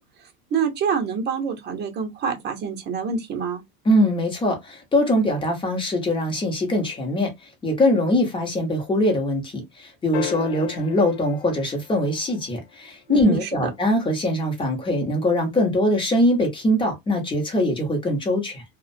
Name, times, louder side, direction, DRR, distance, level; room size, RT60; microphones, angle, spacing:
voice 1, 0.5-3.6 13.1-13.6, right 6 dB, 35° right, 0.8 m, -26 dB
voice 2, 3.8-7.3 7.6-18.6, left 1 dB, 15° left, 0.8 m, -22 dB
sound 1, 10.1-12.7 14.9-15.0, left 11 dB, 80° left, 0.5 m, -36 dB
2.3 x 2.2 x 2.6 m
supercardioid pair, 140°, 32 cm